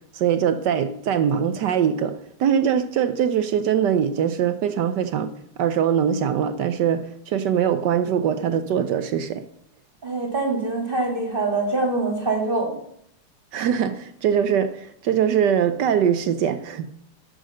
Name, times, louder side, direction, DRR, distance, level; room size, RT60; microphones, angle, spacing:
voice 1, 0.1-5.3 5.6-9.4 13.5-16.9, right 8 dB, 70° right, 1.0 m, -22 dB
voice 2, 10.0-12.7, right 3 dB, 25° right, 1.9 m, -24 dB
11.0 x 6.4 x 6.5 m
omnidirectional pair, 2.4 m